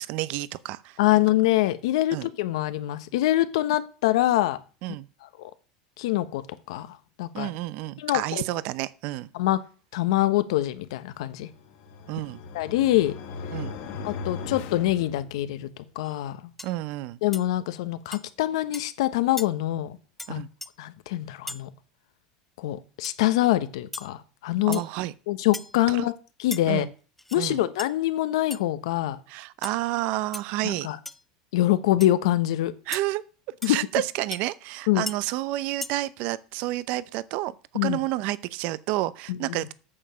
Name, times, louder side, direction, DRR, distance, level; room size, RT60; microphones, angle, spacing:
voice 1, 0.0-1.0 2.1-2.3 4.8-5.1 7.3-9.3 12.1-12.4 13.5-13.7 16.6-17.2 20.3-20.5 24.7-25.1 25.9-26.1 26.7-26.9 27.4-27.6 29.3-30.9 32.9-33.2 33.6-37.5 37.8-39.7, right 16 dB, 55° right, 0.6 m, -30 dB
voice 2, 1.0-4.6 5.2-5.5 6.0-7.5 8.0-8.4 9.3-9.6 9.9-11.5 12.5-13.1 14.0-15.7 15.9-16.4 17.2-20.0 20.3-20.4 20.8-21.7 22.6-24.8 25.3-26.1 26.4-26.8 27.3-29.2 30.6-31.0 31.5-32.7 33.6-33.8 34.9-35.1 37.7-38.0 39.3-39.6, left 15 dB, 80° left, 1.1 m, -25 dB
sound 1, 11.4-15.7, left 4 dB, 65° left, 2.3 m, -38 dB
sound 2, 16.0-16.2 16.6-16.8 17.3-17.5 18.1-18.2 18.7-18.9 19.4-19.5 20.2-20.3 20.6-20.7 21.5-21.6 23.0-23.2 23.9-24.1 24.7-24.9 25.5-25.8 26.5-26.6 27.2-27.4 27.8-27.9 28.5-28.6 29.6-29.8 30.3-30.4 31.0-31.2 32.0-32.1 32.9-33.0 33.6-33.7 34.3-34.4 35.1-35.2 35.8-35.9, left 2 dB, 5° left, 0.5 m, -37 dB
8.6 x 6.9 x 6.3 m
supercardioid pair, 140°, 3 cm